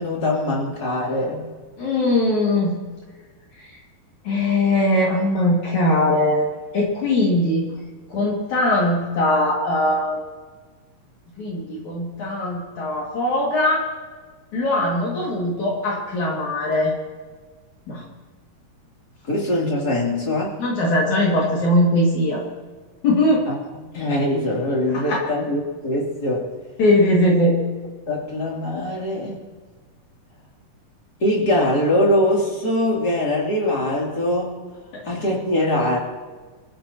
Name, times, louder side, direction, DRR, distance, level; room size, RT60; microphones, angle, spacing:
voice 1, 0.0-1.4 19.3-20.6 23.5-23.6 23.9-26.5 28.1-29.4 31.2-34.6 35.1-36.0, left 1 dB, 30° left, -3 dB, 3.4 m, -22 dB
voice 2, 1.8-2.8 4.3-6.5 6.7-7.7 8.1-10.2 11.4-13.9 14.5-16.9 17.9-18.0 20.6-22.4 23.0-23.4 24.9-25.2 26.8-27.6 34.9-35.0, left 1 dB, 65° left, -3 dB, 3.7 m, -20 dB
25.0 x 14.5 x 3.0 m, 1.4 s
omnidirectional pair, 3.7 m